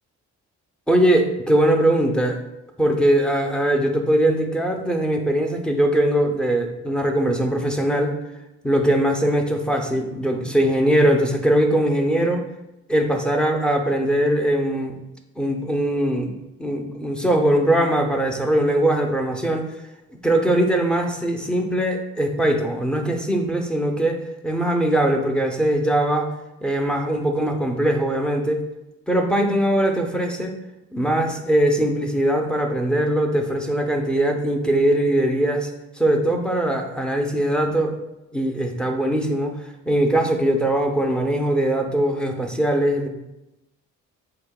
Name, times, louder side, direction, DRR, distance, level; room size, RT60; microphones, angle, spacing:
voice 1, 0.9-2.4 2.8-8.2 8.6-12.4 12.9-15.0 15.4-16.3 16.6-19.7 20.2-26.3 26.6-28.6 29.1-30.5 30.9-35.7 36.0-38.0 38.3-39.6 39.9-43.1, right 1 dB, 5° left, 3 dB, 0.7 m, -21 dB
7.9 x 2.9 x 2.3 m, 0.93 s
cardioid pair, 90°, 30 cm